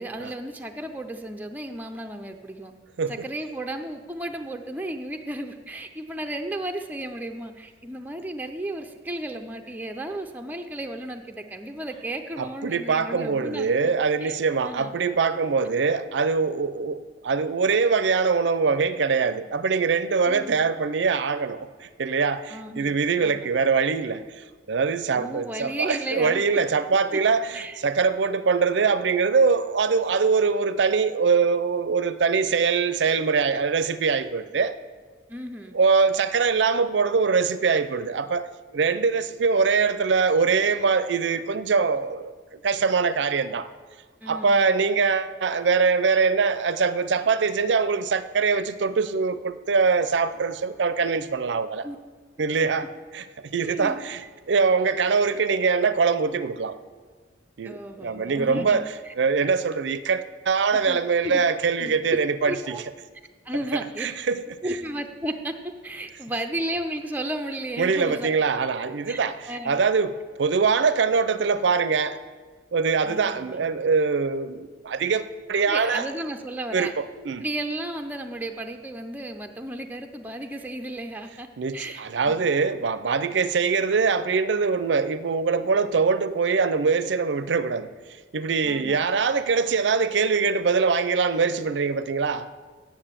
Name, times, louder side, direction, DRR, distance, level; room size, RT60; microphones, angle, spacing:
voice 1, 0.0-2.7 3.1-13.9 14.2-14.9 20.3-20.6 22.5-23.5 25.1-26.4 27.5-27.8 35.3-35.8 44.2-44.9 51.8-52.0 53.6-54.0 57.6-59.1 60.9-61.5 61.8-62.2 62.5-62.8 63.4-64.1 64.6-68.3 69.1-69.2 69.4-69.8 73.0-73.7 75.7-76.9 77.4-81.5 81.7-82.4 88.6-89.1, right 1 dB, 10° right, 0.5 m, -34 dB
voice 2, 12.4-24.2 24.7-34.7 35.7-38.4 38.7-43.7 44.3-51.9 52.4-52.9 53.1-54.2 54.5-56.8 57.6-62.8 63.7-64.5 67.8-72.2 72.7-76.1 76.7-77.4 81.6-87.9 88.3-92.5, right 5 dB, 65° right, 0.5 m, -23 dB
8.8 x 7.3 x 7.4 m
head